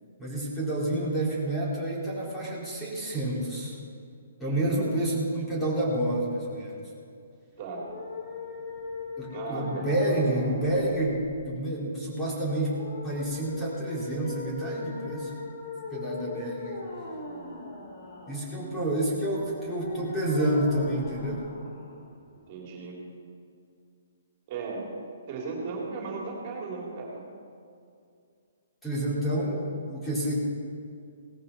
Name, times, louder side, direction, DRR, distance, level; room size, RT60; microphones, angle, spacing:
voice 1, 0.2-3.8 4.4-6.8 9.2-15.3 15.9-16.8 18.3-21.5 28.8-30.3, right 1 dB, 10° left, -6 dB, 4.1 m, -29 dB
voice 2, 4.5-4.9 7.6-7.9 9.3-10.3 17.0-17.6 22.5-23.0 24.5-24.9 25.3-27.2, right 4 dB, 40° right, -2 dB, 3.1 m, -36 dB
sound 1, 7.5-22.5, left 3 dB, 50° left, 3.7 m, -40 dB
17.5 x 14.5 x 4.2 m, 2.4 s
hypercardioid pair, 140°, 0 cm